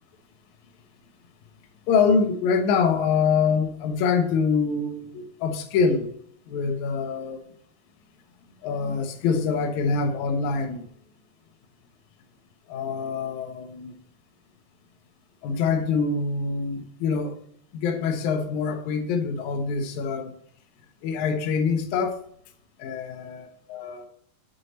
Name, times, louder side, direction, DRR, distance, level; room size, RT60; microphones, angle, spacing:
voice 1, 1.9-6.1 6.5-7.4 8.6-10.8 12.7-13.9 15.4-17.4 17.7-20.4 21.0-22.2 22.8-24.1, left 5 dB, 75° left, 1.7 m, -25 dB
8.0 x 4.4 x 4.0 m
omnidirectional pair, 4.2 m